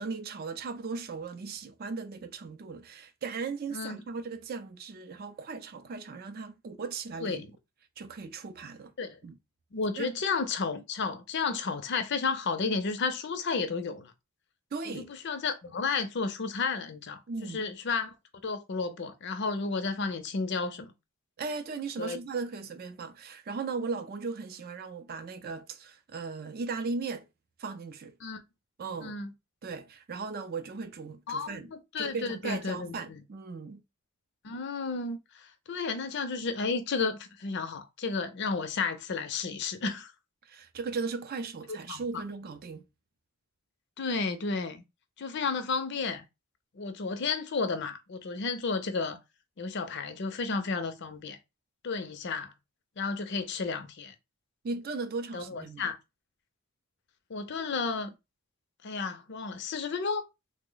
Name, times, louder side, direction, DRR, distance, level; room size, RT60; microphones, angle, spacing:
voice 1, 0.0-7.5 8.0-8.9 9.2-9.4 10.0-10.1 14.7-15.1 17.3-17.7 21.4-27.3 27.6-28.2 28.8-29.2 29.6-33.8 40.5-42.8 54.6-55.9, right 4 dB, 45° right, 0.4 m, -37 dB
voice 2, 9.7-14.1 14.9-18.1 18.4-20.9 22.0-22.2 28.2-28.4 29.0-29.3 31.3-33.2 34.4-40.1 41.9-42.2 44.0-44.8 45.2-46.2 46.7-49.2 49.6-51.4 51.8-52.5 53.0-54.1 55.3-56.0 57.3-58.1 58.8-60.2, left 4 dB, 55° left, 0.5 m, -32 dB
3.2 x 2.0 x 3.8 m
head